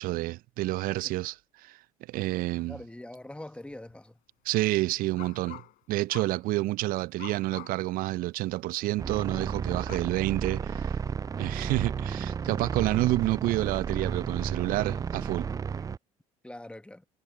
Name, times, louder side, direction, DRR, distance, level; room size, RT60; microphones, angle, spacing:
voice 1, 0.0-1.8 2.1-2.8 4.4-5.6 5.9-10.9 11.4-15.5, right 18 dB, 50° right, 0.8 m, -29 dB
voice 2, 2.7-4.2 14.6-14.7 16.4-17.1, left 1 dB, 5° left, 1.9 m, -43 dB
sound 1, 3.1-3.2 3.6-4.0 5.2-5.8 6.1-6.5 7.2-7.9 8.4-8.5 9.9-10.0, left 15 dB, 55° left, 5.4 m, -46 dB
sound 2, 9.0-16.0, right 6 dB, 20° right, 0.4 m, -33 dB
figure-of-eight pair, 60°, 18 cm